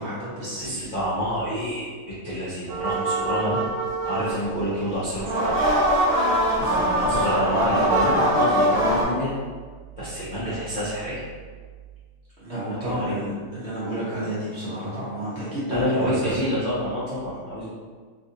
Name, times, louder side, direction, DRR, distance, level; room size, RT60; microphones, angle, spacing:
voice 1, 0.0-0.8 6.6-6.9 12.4-16.4, right 1 dB, 45° right, -10 dB, 1.1 m, -31 dB
voice 2, 0.6-3.6 4.0-5.7 6.7-9.3 10.0-11.2 12.7-13.1 15.7-17.7, equal, 45° left, -13 dB, 0.6 m, -27 dB
sound 1, 2.7-4.5 5.2-9.0, right 1 dB, 60° right, 0.5 m, -22 dB
3.3 x 2.5 x 2.7 m, 1.5 s
omnidirectional pair, 1.9 m